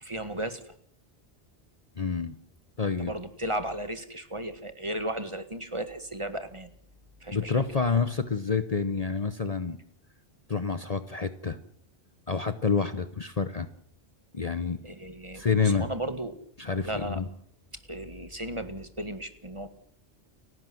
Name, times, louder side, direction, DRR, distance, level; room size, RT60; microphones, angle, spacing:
voice 1, 0.0-0.7 3.0-6.7 7.2-7.6 14.8-16.4 16.8-17.2 17.9-19.7, right 1 dB, 25° right, 9 dB, 1.8 m, -35 dB
voice 2, 2.0-2.4 2.8-3.1 7.3-9.8 10.5-11.6 12.3-13.7 14.3-14.8 15.3-15.9 16.6-17.3, left 5 dB, 35° left, 11 dB, 0.9 m, -28 dB
30.0 x 11.5 x 7.8 m, 0.64 s
omnidirectional pair, 1.1 m